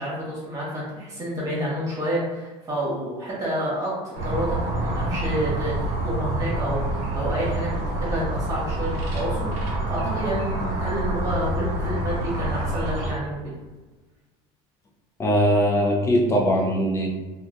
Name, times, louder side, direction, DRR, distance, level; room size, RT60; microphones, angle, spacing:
voice 1, 0.0-5.7 6.0-7.7 8.0-13.5, right 1 dB, 25° right, -6 dB, 1.3 m, -29 dB
sound 1, 4.1-13.1, right 1 dB, 65° right, 0.8 m, -27 dB
voice 2, 15.2-17.1, equal, 20° left, -1 dB, 0.6 m, -20 dB
2.9 x 2.4 x 2.5 m, 1.2 s
cardioid pair, 120°, 13 cm